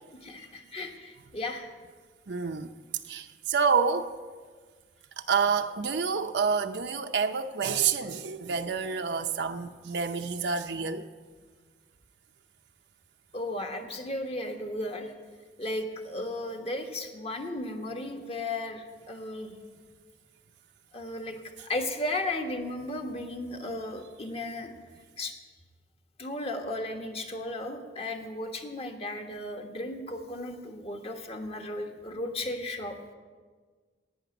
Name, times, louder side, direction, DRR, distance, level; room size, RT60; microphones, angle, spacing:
voice 1, 0.2-1.7 13.3-15.1 15.6-19.5 20.9-24.7 25.2-25.3 26.2-33.0, left 1 dB, 35° left, 1.4 m, -35 dB
voice 2, 2.3-2.7 3.1-4.1 5.2-11.0, right 5 dB, 65° right, 0.6 m, -28 dB
11.0 x 9.3 x 9.2 m
head